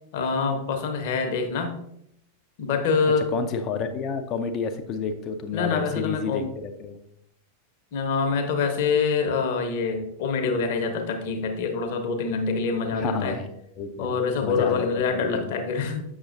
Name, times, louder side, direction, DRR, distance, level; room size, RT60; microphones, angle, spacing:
voice 1, 0.1-1.8 2.6-3.3 5.5-6.4 7.9-13.4 14.0-16.0, left 5 dB, 50° left, 5 dB, 1.0 m, -25 dB
voice 2, 3.2-7.0 13.0-13.5 13.8-15.5, left 5 dB, 35° left, 7 dB, 0.7 m, -30 dB
7.2 x 6.3 x 2.6 m, 0.76 s
figure-of-eight pair, 90°, 0 cm